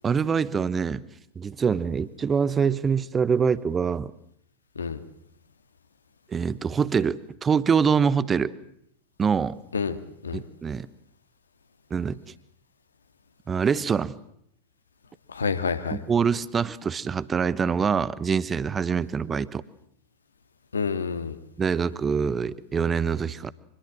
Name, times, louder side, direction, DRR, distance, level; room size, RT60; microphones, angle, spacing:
voice 1, 0.0-1.0 1.4-4.1 6.3-8.5 9.2-9.6 10.3-10.9 11.9-12.2 13.5-14.1 15.9-19.6 21.6-23.5, right 6 dB, 20° right, 18 dB, 1.0 m, -24 dB
voice 2, 15.3-16.0 20.7-21.4, left 5 dB, 75° left, 10 dB, 1.8 m, -28 dB
25.0 x 21.5 x 7.6 m, 0.72 s
figure-of-eight pair, 90°, 0 cm